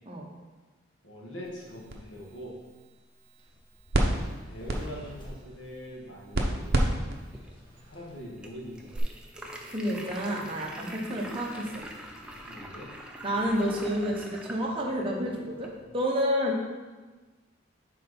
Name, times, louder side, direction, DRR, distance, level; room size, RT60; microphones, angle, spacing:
voice 1, 1.0-2.5 4.5-6.7 7.9-8.9 12.4-12.9, equal, 70° left, -4 dB, 1.8 m, -42 dB
sound 1, 1.4-9.0, right 1 dB, 50° right, 0.8 m, -33 dB
sound 2, 3.4-14.2, left 1 dB, 25° left, 1.2 m, -53 dB
sound 3, 6.4-15.9, equal, 5° right, 0.5 m, -45 dB
voice 2, 9.7-11.7 13.2-15.7 15.9-16.6, equal, 25° right, -2 dB, 1.0 m, -29 dB
6.5 x 4.4 x 5.4 m, 1.3 s
head